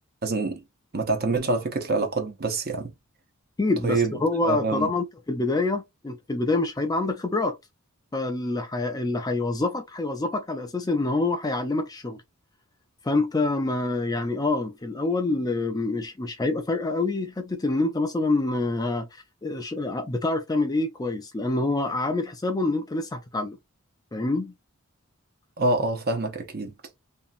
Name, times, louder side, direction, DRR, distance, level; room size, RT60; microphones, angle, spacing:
voice 1, 0.2-0.6 0.9-2.9 3.8-4.1 4.4-4.9 25.6-26.7, right 3 dB, 45° right, 0.7 m, -26 dB
voice 2, 3.6-7.6 8.1-12.2 13.0-23.6 24.1-24.5, left 2 dB, 15° left, 0.4 m, -26 dB
2.8 x 2.6 x 2.4 m
head